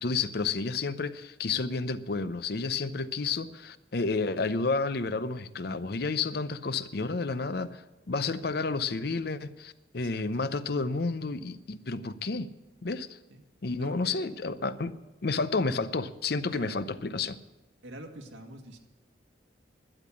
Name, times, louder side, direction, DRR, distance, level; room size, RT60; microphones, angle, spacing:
voice 1, 0.0-12.5 12.8-13.1 13.6-14.9 15.2-17.4, left 4 dB, 55° left, 13 dB, 0.6 m, -31 dB
voice 2, 13.8-14.3 16.5-16.7 17.8-18.8, right 1 dB, 90° right, 2 dB, 1.9 m, -45 dB
12.5 x 10.0 x 8.5 m, 1.0 s
head